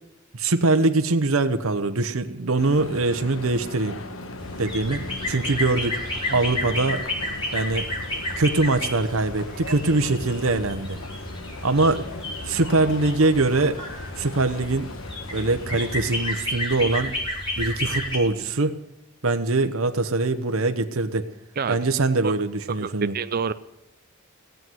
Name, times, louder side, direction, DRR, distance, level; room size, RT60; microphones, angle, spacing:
voice 1, 0.3-4.0 4.6-6.0 6.3-7.0 7.5-7.9 8.4-11.0 11.6-12.0 12.4-13.8 14.2-14.9 15.3-17.1 17.6-18.7 19.2-21.3 21.7-23.1, right 3 dB, 85° right, 8 dB, 1.0 m, -23 dB
sound 1, 2.6-16.3, left 2 dB, 75° left, 1.4 m, -39 dB
sound 2, 4.4-18.2, left 1 dB, 25° left, 4.1 m, -32 dB
voice 2, 22.8-23.5, right 5 dB, 45° right, 11 dB, 0.5 m, -27 dB
17.0 x 7.9 x 9.2 m, 0.82 s
head